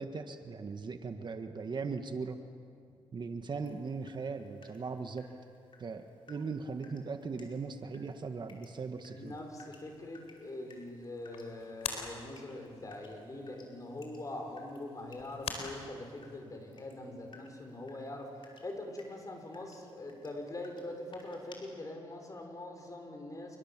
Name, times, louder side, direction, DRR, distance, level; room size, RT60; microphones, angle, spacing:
voice 1, 0.0-2.4 3.1-5.3 5.8-9.4, right 4 dB, 45° right, 6 dB, 1.6 m, -39 dB
Water tap faucet / Drip, 3.5-21.6, left 3 dB, 50° left, 5.4 m, -61 dB
voice 2, 9.1-18.3 18.6-23.6, left 2 dB, 35° left, 3 dB, 6.3 m, -43 dB
sound 1, 9.2-16.4, left 5 dB, 80° left, 4.3 m, -46 dB
28.5 x 23.5 x 7.5 m, 2.3 s
cardioid pair, 80°, 10 cm